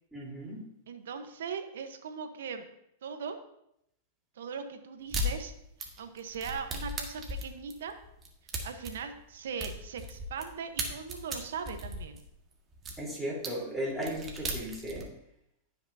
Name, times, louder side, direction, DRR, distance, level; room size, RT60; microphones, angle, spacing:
voice 1, 0.1-0.6 13.0-15.0, equal, ahead, -6 dB, 3.8 m, -36 dB
voice 2, 0.9-2.6 3.0-3.4 4.4-5.5 6.0-7.9 8.6-12.2, right 6 dB, 80° right, 7 dB, 1.1 m, -39 dB
sound 1, 5.1-5.3 5.8-10.5 10.8-13.0 13.4-13.5 13.9-15.0, equal, 25° right, 1.7 m, -36 dB
14.5 x 5.9 x 2.8 m, 0.78 s
hypercardioid pair, 125°, 0 cm